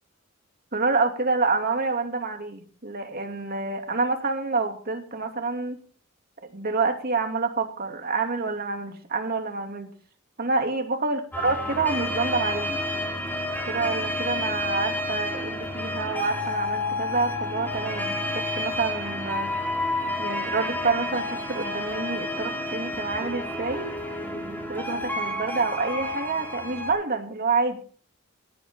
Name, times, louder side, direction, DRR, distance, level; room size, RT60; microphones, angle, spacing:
voice 1, 0.7-5.8 6.5-9.9 10.4-12.8 13.7-19.5 20.2-23.9 24.3-27.8, right 3 dB, 45° right, 4 dB, 2.6 m, -28 dB
sound 1, 11.3-26.9, left 1 dB, 10° left, 4.0 m, -30 dB
17.5 x 13.0 x 3.7 m, 0.42 s
head